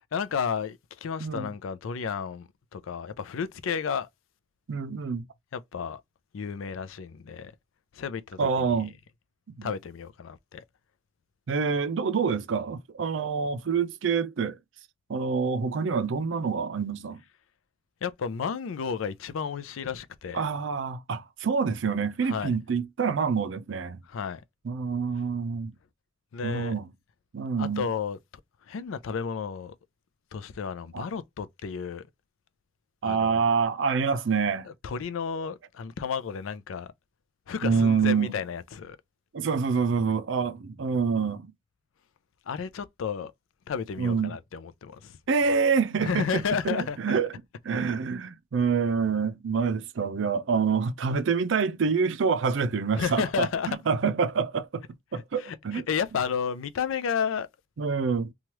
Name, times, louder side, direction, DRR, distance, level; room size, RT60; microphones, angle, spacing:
voice 1, 0.1-4.1 5.5-6.0 6.3-7.5 7.9-8.7 9.6-10.6 18.0-20.5 22.2-22.6 24.1-24.4 26.3-26.8 27.6-28.2 28.7-29.7 30.3-32.0 33.0-33.4 34.7-36.9 37.5-39.0 42.5-43.3 43.7-45.2 46.0-47.2 53.0-53.8 55.1-57.5, left 6 dB, 85° left, 0.4 m, -32 dB
voice 2, 1.2-1.5 4.7-5.2 8.4-8.9 9.6-9.7 11.5-14.6 15.1-17.2 20.3-24.0 24.6-25.7 26.4-26.9 27.3-27.8 30.9-31.0 33.0-34.7 37.6-38.3 39.3-41.4 44.0-44.4 45.3-47.3 47.6-54.8 55.1-55.8 57.8-58.3, right 5 dB, 70° right, 0.4 m, -26 dB
3.0 x 2.3 x 2.9 m
head